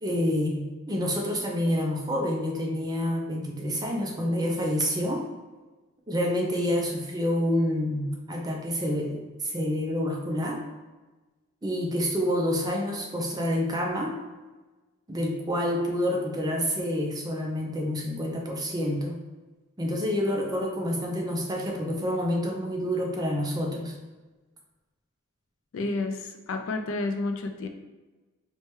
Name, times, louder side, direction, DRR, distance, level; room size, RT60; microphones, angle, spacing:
voice 1, 0.0-5.2 6.1-10.6 11.6-14.1 15.1-19.2 19.8-23.9, equal, 20° right, 0 dB, 0.4 m, -28 dB
voice 2, 25.7-27.7, left 2 dB, 65° left, 5 dB, 0.4 m, -30 dB
4.4 x 2.2 x 3.0 m, 1.2 s
head